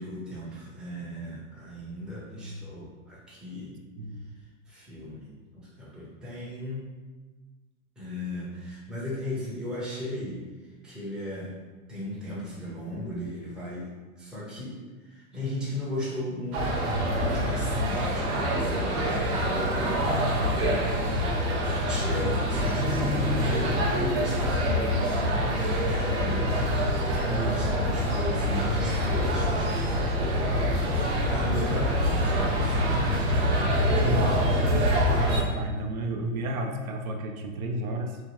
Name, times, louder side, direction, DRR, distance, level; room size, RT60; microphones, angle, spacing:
voice 1, 0.0-3.8 4.7-6.9 8.0-10.4 10.8-11.5 11.9-13.9 14.2-14.8 15.0-21.5 21.8-27.0 27.3-30.2 31.3-34.5, left 1 dB, ahead, -8 dB, 0.4 m, -36 dB
sound 1, 16.5-35.4, equal, 50° right, 0.7 m, -25 dB
voice 2, 19.8-20.5 20.9-21.1 27.2-27.6 34.0-34.5 35.1-38.2, right 1 dB, 90° right, 3 dB, 0.6 m, -32 dB
2.8 x 2.3 x 2.9 m, 1.3 s
hypercardioid pair, 125°, 41 cm